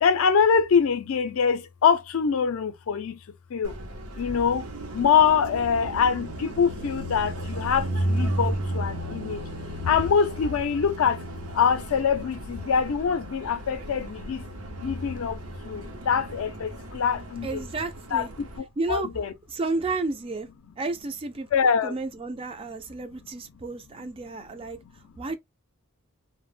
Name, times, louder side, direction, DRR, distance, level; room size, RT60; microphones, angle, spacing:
voice 1, 0.0-3.2 3.5-3.7 4.2-4.7 4.9-9.4 9.8-11.2 11.5-14.4 14.8-15.4 15.6-17.5 18.1-18.5 18.9-19.3 21.5-21.9, left 6 dB, 70° left, 0.4 m, -24 dB
Car passing by, 3.6-18.6, right 1 dB, 80° right, 0.7 m, -34 dB
voice 2, 17.4-18.3 18.8-19.1 19.5-20.5 20.8-25.4, right 3 dB, 25° right, 0.3 m, -32 dB
2.1 x 2.0 x 3.2 m
head